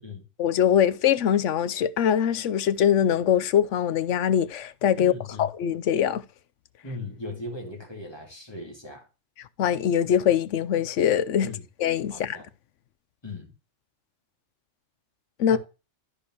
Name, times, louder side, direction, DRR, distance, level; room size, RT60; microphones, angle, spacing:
voice 1, 0.4-5.1 5.4-6.2 9.6-11.5 11.8-12.4 15.4-15.6, left 9 dB, 80° left, 1.0 m, -22 dB
voice 2, 5.0-5.5 6.8-9.1 11.4-11.6 12.1-12.5 13.2-13.5 15.5-15.6, left 3 dB, 20° left, 2.3 m, -38 dB
13.0 x 5.0 x 2.9 m
omnidirectional pair, 1.3 m